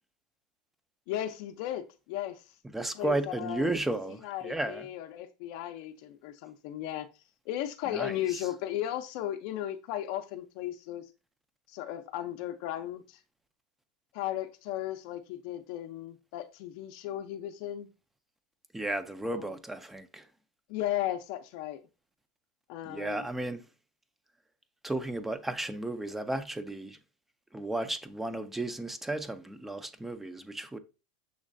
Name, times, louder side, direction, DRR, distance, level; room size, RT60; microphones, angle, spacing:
voice 1, 1.1-2.5 2.9-3.7 4.2-7.1 7.5-11.1 11.7-13.2 14.1-17.9 19.2-19.5 20.7-21.8 22.7-23.3, left 12 dB, 60° left, 0.5 m, -36 dB
voice 2, 2.7-4.9 7.9-8.5 18.7-20.3 22.9-23.7 24.8-27.0 27.5-30.8, right 2 dB, 5° right, 0.4 m, -34 dB
6.3 x 3.1 x 2.5 m
supercardioid pair, 135°, 3 cm